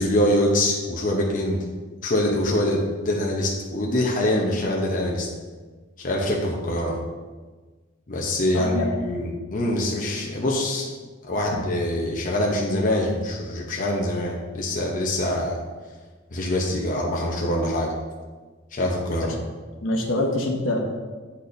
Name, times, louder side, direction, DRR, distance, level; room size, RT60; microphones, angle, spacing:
voice 1, 0.0-1.6 2.0-5.3 6.0-7.0 8.1-10.9 11.3-15.6 16.3-17.9 18.7-19.4, left 1 dB, 40° left, -1 dB, 0.8 m, -24 dB
voice 2, 8.5-8.9 19.2-19.3 19.8-20.8, left 1 dB, 85° left, 0 dB, 1.0 m, -25 dB
9.9 x 4.2 x 2.6 m, 1.4 s
head